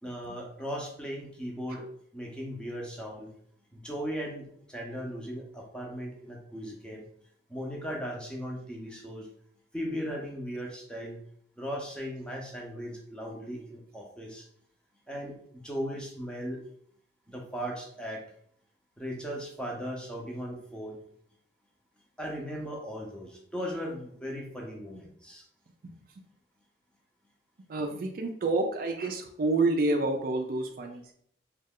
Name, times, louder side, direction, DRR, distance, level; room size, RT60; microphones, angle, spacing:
voice 1, 0.0-1.9 2.1-3.3 3.7-7.0 7.5-9.3 9.7-11.2 11.6-14.5 15.1-16.6 17.3-18.2 19.0-21.0 22.2-25.4, equal, 5° left, -1 dB, 0.6 m, -37 dB
voice 2, 27.7-31.1, right 2 dB, 50° right, 4 dB, 0.4 m, -28 dB
3.1 x 2.3 x 3.5 m, 0.65 s
head